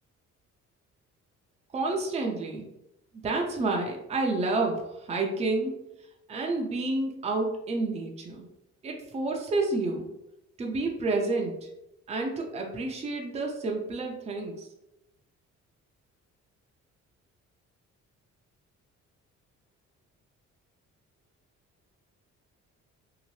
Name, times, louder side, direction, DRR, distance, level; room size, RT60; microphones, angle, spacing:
voice 1, 1.7-2.7 3.2-5.7 6.3-8.5 8.8-10.1 10.6-11.7 12.1-14.7, right 3 dB, 20° right, 1 dB, 0.5 m, -29 dB
2.8 x 2.0 x 3.0 m, 0.88 s
cardioid pair, 90°, 30 cm